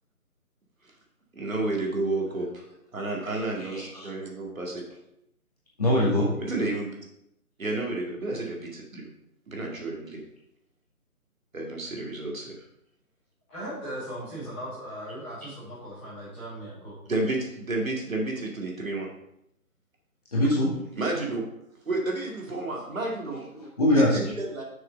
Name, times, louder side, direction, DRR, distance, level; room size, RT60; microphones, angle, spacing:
voice 1, 1.3-2.6 2.9-4.8 6.4-6.9 7.6-9.1 9.5-10.2 11.5-12.5 17.1-19.1 21.0-21.4 21.9-23.4 23.9-24.6, right 2 dB, 65° right, 0 dB, 2.2 m, -31 dB
voice 2, 3.7-4.1 5.8-6.3 20.3-20.7 23.3-24.2, left 1 dB, 25° left, -6 dB, 1.9 m, -23 dB
voice 3, 13.5-16.9, equal, 5° left, -14 dB, 2.1 m, -38 dB
6.4 x 6.1 x 5.2 m, 0.78 s
hypercardioid pair, 175°, 44 cm